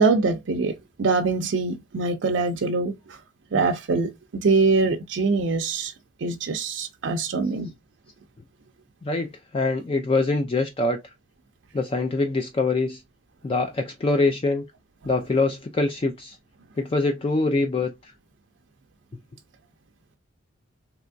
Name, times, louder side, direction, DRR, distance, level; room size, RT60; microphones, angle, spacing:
voice 1, 0.0-3.2 3.5-5.9 6.2-7.7, right 4 dB, 70° right, 0.4 m, -23 dB
voice 2, 9.5-11.0 11.7-13.0 13.4-14.6 15.0-16.4 16.8-17.9, left 3 dB, 30° left, 0.4 m, -24 dB
3.4 x 2.9 x 2.5 m
head